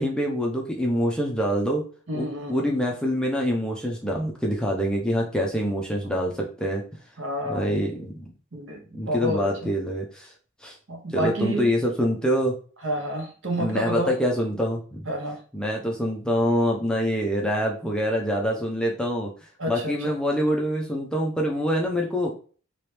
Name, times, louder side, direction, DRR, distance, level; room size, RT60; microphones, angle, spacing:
voice 1, 0.0-1.8 2.1-6.8 7.5-8.2 8.9-10.3 10.6-10.8 11.1-12.5 13.6-15.1 15.5-19.3 19.7-22.3, equal, 5° left, 0.5 m, -25 dB
voice 2, 2.1-2.7 7.2-7.8 8.5-9.7 10.9-11.7 12.8-14.1 15.1-15.4 19.6-20.1, equal, 65° right, 1.1 m, -30 dB
3.0 x 3.0 x 3.2 m
head